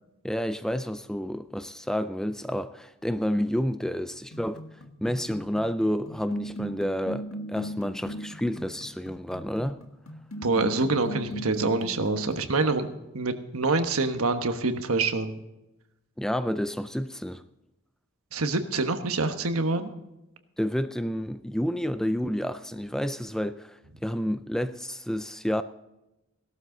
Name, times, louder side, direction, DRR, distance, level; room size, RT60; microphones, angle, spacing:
voice 1, 0.2-4.6 5.0-9.8 16.2-17.4 20.6-25.6, equal, ahead, 0.4 m, -30 dB
sound 1, 4.3-12.8, equal, 75° left, 1.5 m, -39 dB
voice 2, 10.4-15.4 18.3-19.9, right 3 dB, 85° right, 1.3 m, -26 dB
17.5 x 12.5 x 3.9 m
head